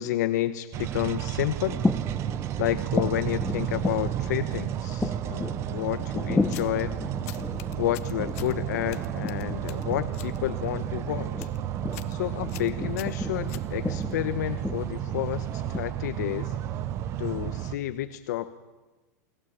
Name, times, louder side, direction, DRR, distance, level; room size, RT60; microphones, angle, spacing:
voice 1, 0.0-1.8 2.6-7.0 7.8-11.5 12.1-16.6 17.2-18.5, left 14 dB, 75° left, 11 dB, 1.1 m, -30 dB
sound 1, 0.7-17.8, right 11 dB, 30° right, 0.9 m, -32 dB
sound 2, 1.6-15.8, left 3 dB, 5° left, 0.9 m, -35 dB
sound 3, 6.4-6.8 7.3-8.6 8.9-10.4 10.7-11.0 11.3-11.6 11.9-12.2 12.5-14.1, left 15 dB, 55° left, 1.4 m, -43 dB
29.5 x 20.5 x 8.8 m, 1.2 s
supercardioid pair, 165°, 9 cm